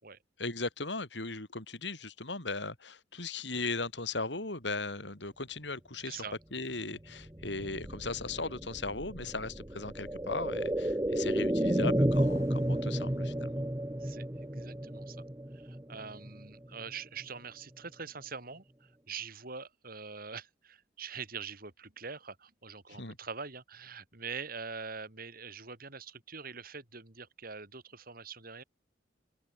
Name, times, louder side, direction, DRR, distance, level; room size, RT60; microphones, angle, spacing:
voice 1, 0.4-6.2 6.5-13.6 22.9-23.2, left 3 dB, 70° left, 5.0 m, -37 dB
voice 2, 6.0-6.4 14.0-15.2 15.5-28.6, right 5 dB, 55° right, 3.7 m, -44 dB
sound 1, 7.1-16.9 17.2-17.3, right 1 dB, 15° right, 1.3 m, -32 dB
open air
head